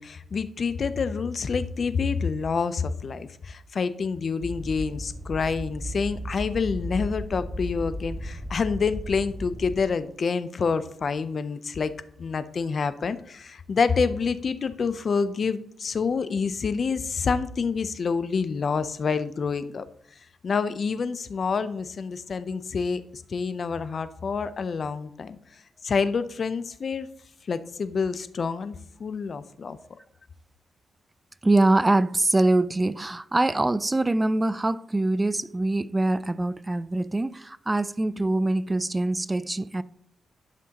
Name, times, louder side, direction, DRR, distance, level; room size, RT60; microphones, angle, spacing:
voice 1, 0.0-11.9 12.2-19.8 20.4-25.4 25.8-27.1 27.5-29.8, left 5 dB, 55° left, 0.6 m, -27 dB
sound 1, 4.4-9.8, equal, 5° right, 1.2 m, -35 dB
voice 2, 31.4-39.8, right 2 dB, 20° right, 0.3 m, -24 dB
11.5 x 6.1 x 2.9 m
cardioid pair, 80°, 0 cm